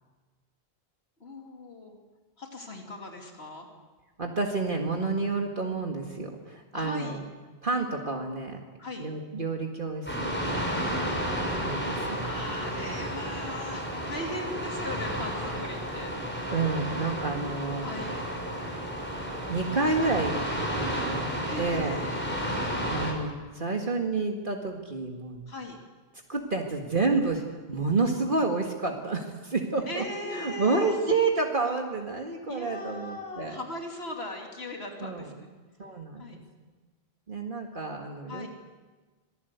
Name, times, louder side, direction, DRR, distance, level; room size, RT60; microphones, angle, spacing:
voice 1, 1.2-2.0 2.4-3.7 6.7-7.2 8.8-9.1 12.2-16.1 17.8-18.2 21.5-22.3 25.5-25.8 29.8-31.0 32.5-35.5 36.2-36.4 38.3-38.5, left 2 dB, 85° left, 1 dB, 3.1 m, -39 dB
voice 2, 4.2-7.2 7.6-8.6 9.0-10.9 11.6-12.6 16.5-17.9 19.5-22.0 22.9-25.4 26.3-33.6 35.0-35.3 35.8-36.4 37.3-38.5, right 3 dB, 55° right, 1 dB, 2.1 m, -30 dB
sound 1, 10.1-23.1, equal, 10° left, 5.6 m, -32 dB
27.0 x 19.5 x 8.2 m, 1.3 s
omnidirectional pair, 1.0 m